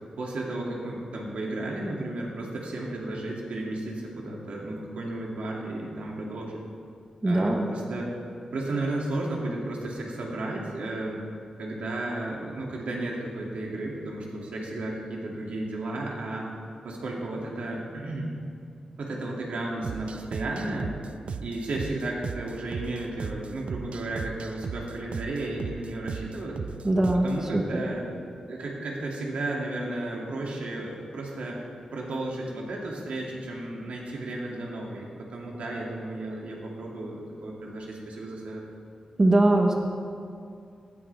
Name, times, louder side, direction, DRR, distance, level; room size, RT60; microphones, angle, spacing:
voice 1, 0.2-6.6 7.2-8.1 8.5-11.2 11.6-16.5 16.8-18.3 19.0-21.0 21.4-26.6 27.1-28.0 28.5-31.6 31.9-38.6, right 2 dB, 90° right, -3 dB, 2.7 m, -33 dB
voice 2, 7.2-7.7 26.8-27.8 39.2-39.7, right 1 dB, 25° right, 1 dB, 1.3 m, -22 dB
sound 1, 19.8-27.4, right 5 dB, 65° right, 0.5 m, -37 dB
18.0 x 12.5 x 3.6 m, 2.5 s
wide cardioid pair, 165°, 2 cm